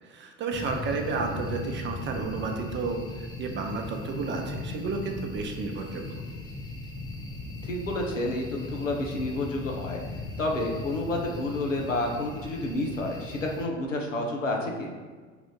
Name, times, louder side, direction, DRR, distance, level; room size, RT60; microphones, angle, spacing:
voice 1, 0.0-6.2, right 4 dB, 30° right, 3 dB, 0.6 m, -32 dB
sound 1, 0.5-13.7, left 2 dB, 15° left, 0.3 m, -38 dB
voice 2, 7.6-14.9, left 2 dB, 90° left, 1 dB, 0.7 m, -30 dB
5.0 x 2.5 x 3.6 m, 1.4 s
figure-of-eight pair, 70°, 37 cm